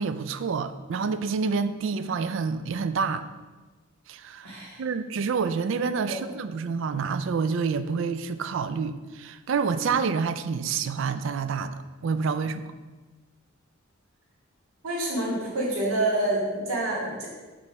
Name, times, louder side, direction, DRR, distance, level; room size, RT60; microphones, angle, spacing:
voice 1, 0.0-3.2 4.1-4.5 4.8-12.7, right 5 dB, 60° right, 11 dB, 0.3 m, -28 dB
voice 2, 4.4-4.8 6.1-6.2 14.8-17.3, right 1 dB, 85° right, -4 dB, 2.0 m, -27 dB
6.1 x 3.1 x 5.7 m, 1.3 s
head